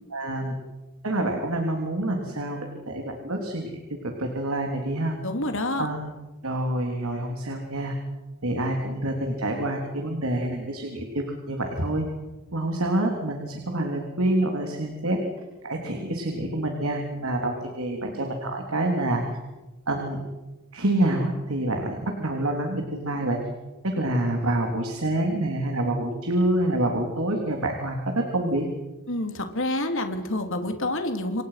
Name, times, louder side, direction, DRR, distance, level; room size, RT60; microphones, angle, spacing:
voice 1, 0.1-0.5 1.0-5.2 5.8-6.0 6.4-7.9 8.4-12.1 12.5-15.2 15.6-19.2 19.9-20.2 20.7-23.4 23.8-28.7, right 1 dB, 70° right, 2 dB, 3.6 m, -27 dB
voice 2, 5.2-5.9 29.1-31.4, left 1 dB, 60° left, 6 dB, 3.2 m, -28 dB
29.0 x 25.0 x 5.9 m, 1.1 s
head